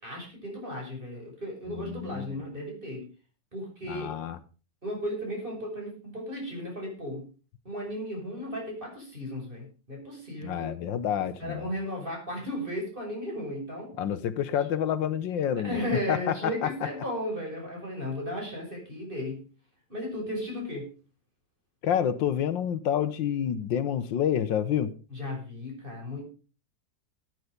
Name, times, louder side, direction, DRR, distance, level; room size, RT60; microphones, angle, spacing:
voice 1, 0.0-3.1 3.5-4.1 4.8-7.3 7.6-10.7 11.4-13.9 15.6-19.4 19.9-20.9 25.1-26.2, left 1 dB, 25° right, 6.7 m, -35 dB
voice 2, 1.7-2.3 3.9-4.4 10.4-11.7 14.0-15.8 16.1-16.7 21.8-24.9, left 9 dB, 80° left, 1.7 m, -28 dB
14.0 x 9.5 x 5.1 m
omnidirectional pair, 2.0 m